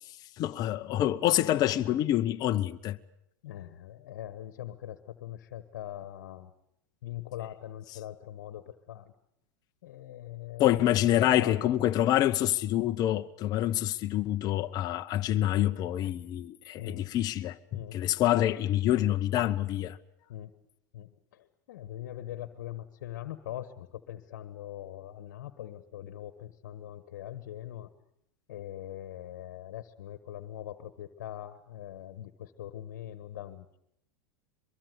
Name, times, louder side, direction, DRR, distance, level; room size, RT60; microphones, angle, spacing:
voice 1, 0.0-3.0 10.6-20.0, left 13 dB, 40° left, 1.0 m, -27 dB
voice 2, 3.4-6.5 7.0-9.1 9.8-11.1 11.4-11.7 16.8-17.1 17.7-18.0 20.3-20.5 20.9-27.9 28.5-33.8, left 12 dB, 75° left, 1.5 m, -42 dB
23.5 x 23.0 x 8.1 m
hypercardioid pair, 105°, 10 cm